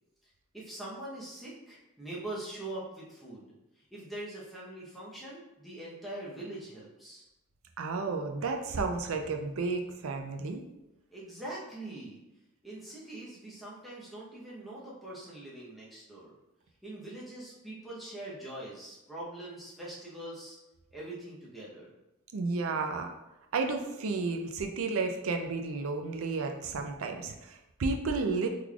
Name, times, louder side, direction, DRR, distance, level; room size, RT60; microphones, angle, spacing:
voice 1, 0.5-3.5 3.9-7.2 11.1-12.2 12.6-16.3 16.8-20.6 20.9-21.9, right 1 dB, ahead, -8 dB, 0.7 m, -43 dB
voice 2, 7.8-10.6 22.3-23.1 23.5-28.5, right 4 dB, 70° right, 4 dB, 0.4 m, -32 dB
3.7 x 3.2 x 2.3 m, 0.96 s
head